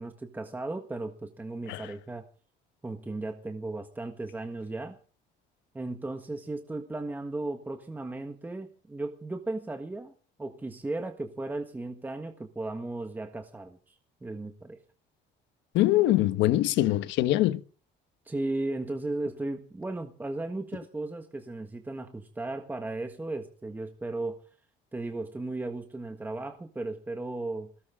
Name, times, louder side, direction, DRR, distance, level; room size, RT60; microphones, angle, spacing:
voice 1, 0.0-2.2 2.8-5.0 5.7-10.1 10.4-13.9 14.2-14.8 18.2-24.4 24.9-27.7, right 2 dB, 10° right, 1.6 m, -35 dB
voice 2, 15.7-17.6, left 15 dB, 75° left, 1.3 m, -23 dB
21.5 x 18.0 x 3.7 m
cardioid pair, 165°, 19 cm